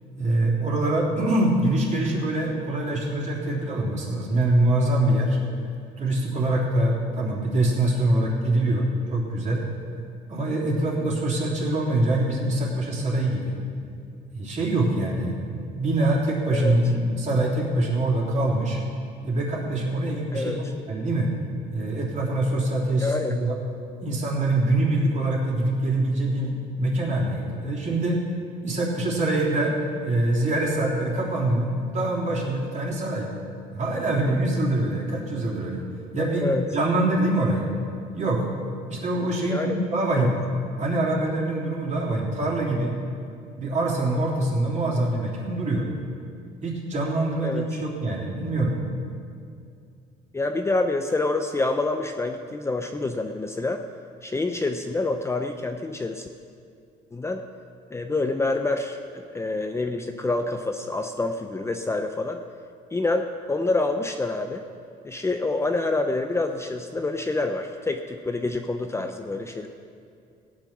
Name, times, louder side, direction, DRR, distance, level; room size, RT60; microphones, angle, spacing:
voice 1, 0.2-5.4 6.0-9.6 10.3-13.5 14.3-18.8 19.2-21.3 21.7-23.6 24.0-28.2 28.6-33.3 33.7-35.8 36.1-37.7 38.1-38.5 38.9-40.4 40.8-42.9 43.6-45.9 46.6-48.7, right 1 dB, 45° right, -4 dB, 3.5 m, -24 dB
voice 2, 20.3-20.6 23.0-23.4 36.4-36.6 39.5-39.8 40.1-40.3 47.4-47.7 50.3-53.8 54.2-56.3 57.1-57.4 57.9-62.4 62.9-64.6 65.0-69.7, left 2 dB, 15° left, 5 dB, 0.6 m, -27 dB
16.0 x 8.8 x 6.1 m, 2.4 s
cardioid pair, 110°, 17 cm